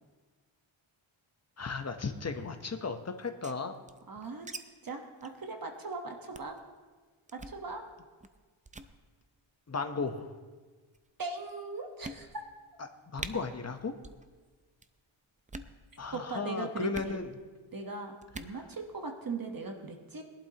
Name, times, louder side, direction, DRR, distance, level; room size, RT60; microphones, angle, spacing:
voice 1, 1.6-3.7 9.7-10.3 13.1-13.9 16.0-17.3, left 4 dB, 30° left, 7 dB, 0.9 m, -35 dB
sound 1, 3.2-4.6 4.8-4.9 5.2-5.4 5.7-5.9 6.3-6.6 7.3-7.6 8.2-8.4 8.7-8.9 9.8-10.2 10.9-11.0 11.5-11.6 12.0-12.6 12.8-12.9 13.2-13.3 14.0-14.2 14.5-14.9 15.4-15.8 16.9-17.1 18.2-18.6, right 3 dB, 15° right, 0.5 m, -44 dB
voice 2, 4.1-4.5 4.8-6.6 7.3-7.8 11.2-12.4 16.1-17.2 17.7-20.2, right 3 dB, 45° right, 4 dB, 1.2 m, -39 dB
20.5 x 11.5 x 2.9 m, 1.4 s
wide cardioid pair, 120°, 49 cm